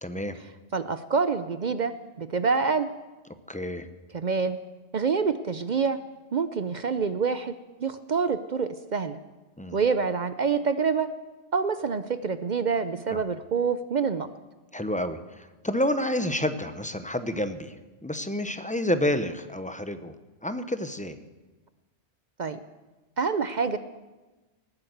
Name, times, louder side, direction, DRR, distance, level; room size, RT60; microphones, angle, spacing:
voice 1, 0.0-0.4 3.5-3.9 9.6-9.8 13.1-13.2 14.7-20.1 20.4-21.2, left 1 dB, 10° left, 10 dB, 0.6 m, -29 dB
voice 2, 0.7-2.9 4.1-4.6 4.9-6.0 6.3-7.5 7.8-9.2 9.7-11.1 11.5-14.3 22.4-22.6 23.2-23.8, right 5 dB, 50° right, 12 dB, 0.6 m, -26 dB
19.0 x 8.8 x 7.9 m, 1.2 s
omnidirectional pair, 1.3 m